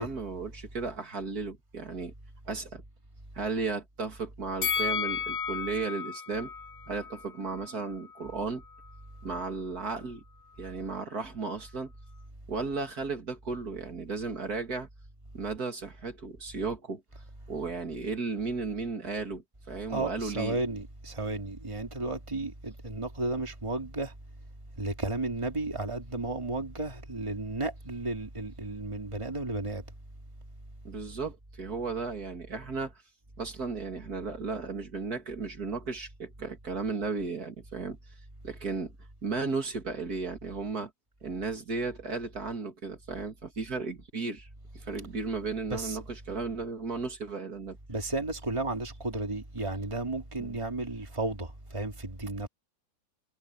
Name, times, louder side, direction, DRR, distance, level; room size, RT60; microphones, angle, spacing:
voice 1, 0.0-2.1 2.5-2.8 3.3-6.5 6.9-8.6 9.2-10.2 10.6-11.9 12.5-14.9 15.3-17.0 17.5-20.6 30.8-33.0 33.4-38.0 38.4-38.9 39.2-40.9 41.2-44.5 44.7-47.8 50.4-50.6, right 4 dB, 65° right, 2.9 m, -34 dB
Bell, 4.6-7.8 8.2-8.3, left 7 dB, 55° left, 3.8 m, -33 dB
voice 2, 19.9-24.1 24.8-29.8 45.7-46.0 47.9-52.5, right 2 dB, 20° right, 2.7 m, -33 dB
omnidirectional pair, 1.8 m